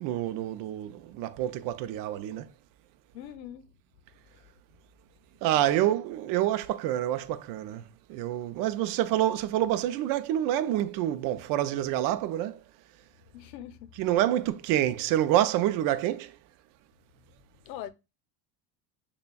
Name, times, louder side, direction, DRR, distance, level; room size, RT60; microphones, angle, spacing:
voice 1, 0.0-2.5 5.4-12.6 13.9-16.4, right 12 dB, 45° right, 0.5 m, -27 dB
voice 2, 3.1-3.7 5.6-5.9 13.3-14.0 17.6-17.9, left 11 dB, 85° left, 0.7 m, -42 dB
6.7 x 2.3 x 2.2 m
supercardioid pair, 115°, 49 cm